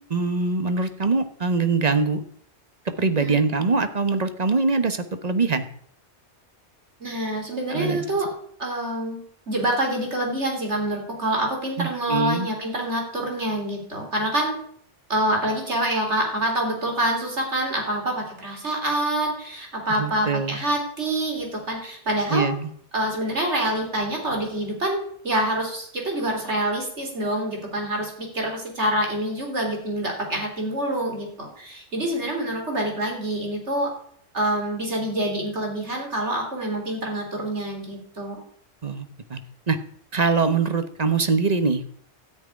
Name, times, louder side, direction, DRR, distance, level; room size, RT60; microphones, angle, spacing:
voice 1, 0.1-2.2 2.8-5.7 7.7-8.0 11.8-12.5 19.9-20.6 22.3-22.7 38.8-39.4 39.7-39.8 40.1-42.0, right 4 dB, 40° right, 9 dB, 1.1 m, -23 dB
voice 2, 7.0-8.3 8.6-9.2 9.5-14.6 15.1-22.5 22.9-33.9 34.3-38.4, right 1 dB, 85° right, 1 dB, 3.9 m, -26 dB
13.0 x 6.2 x 9.7 m, 0.63 s
omnidirectional pair, 1.1 m